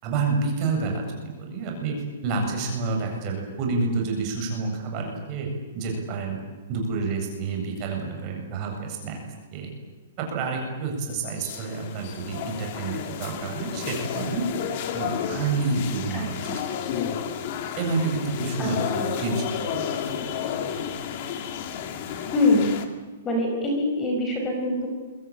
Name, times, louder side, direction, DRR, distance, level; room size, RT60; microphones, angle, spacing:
voice 1, 0.0-6.4 6.7-9.2 9.5-9.7 10.2-14.4 14.9-16.6 17.8-20.3, right 4 dB, 30° right, 1 dB, 7.9 m, -29 dB
sound 1, 11.4-22.8, left 8 dB, 40° left, 2.6 m, -31 dB
voice 2, 18.6-19.1 22.3-22.7 23.2-24.9, left 2 dB, 15° left, 1 dB, 5.2 m, -24 dB
27.5 x 23.5 x 9.1 m, 1.3 s
hypercardioid pair, 165°, 0 cm